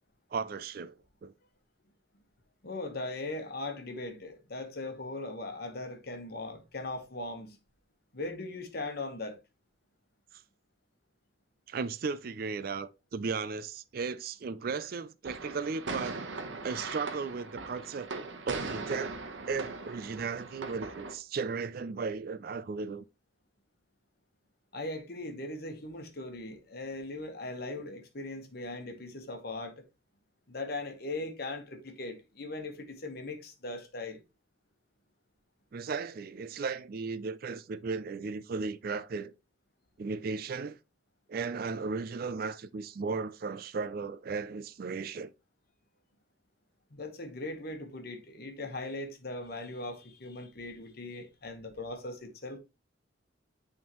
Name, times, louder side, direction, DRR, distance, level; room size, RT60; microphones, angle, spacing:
voice 1, 0.3-0.9 1.2-1.3 11.7-16.2 16.6-19.2 19.5-23.0 35.7-39.3 40.0-40.8 41.3-45.3, right 4 dB, 50° right, 0.4 m, -35 dB
voice 2, 2.6-7.6 8.1-9.4 24.7-29.8 30.5-34.2 46.9-52.6, left 2 dB, 50° left, 1.2 m, -39 dB
sound 1, 15.2-21.1, right 3 dB, 70° right, 1.0 m, -40 dB
8.6 x 3.6 x 3.0 m
head